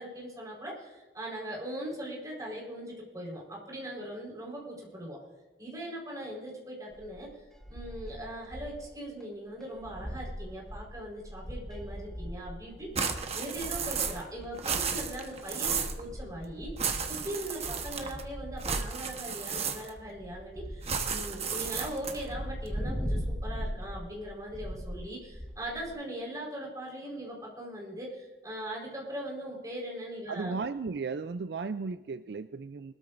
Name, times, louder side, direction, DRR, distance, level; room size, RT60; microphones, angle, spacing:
voice 1, 0.0-5.2 5.6-30.5, right 1 dB, 20° right, -3 dB, 4.4 m, -40 dB
sound 1, 6.9-8.9 9.2-9.3 9.6-25.9, equal, 5° left, 1.4 m, -40 dB
sound 2, 12.9-14.3 14.5-16.0 16.8-18.2 18.6-20.1 20.8-22.3, right 6 dB, 35° right, 1.1 m, -33 dB
voice 2, 30.3-32.9, right 4 dB, 65° right, 11 dB, 0.4 m, -35 dB
22.5 x 13.5 x 2.6 m, 1.3 s
head